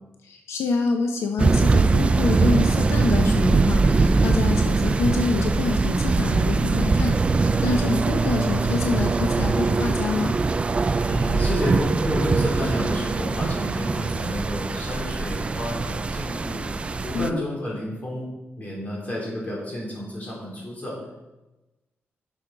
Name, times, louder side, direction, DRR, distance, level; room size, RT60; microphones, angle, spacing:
voice 1, 0.2-10.3 17.1-17.4, left 4 dB, 90° left, 4 dB, 0.7 m, -27 dB
sound 1, 1.4-17.3, right 3 dB, 25° right, 0.4 m, -22 dB
voice 2, 11.1-16.6 17.0-18.3 18.6-21.0, left 1 dB, 35° left, -3 dB, 3.2 m, -30 dB
10.5 x 6.1 x 3.9 m, 1.0 s
wide cardioid pair, 145°, 4 cm